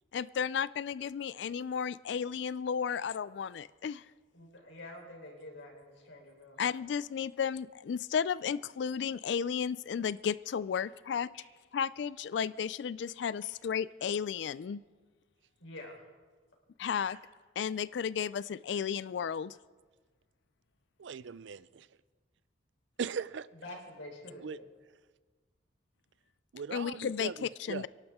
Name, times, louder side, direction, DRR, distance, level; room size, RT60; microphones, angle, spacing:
voice 1, 0.1-4.0 6.6-11.3 11.7-14.8 16.8-17.2 17.6-19.6 26.7-27.9, left 7 dB, 65° left, 18 dB, 0.3 m, -33 dB
voice 2, 4.3-6.6 11.3-11.4 15.6-16.0 23.6-24.6, left 1 dB, 90° left, 1 dB, 3.8 m, -47 dB
voice 3, 21.0-21.9 23.0-23.5 24.4-24.6 26.5-27.9, right 6 dB, 75° right, 18 dB, 0.4 m, -39 dB
27.0 x 11.5 x 3.6 m, 1.4 s
head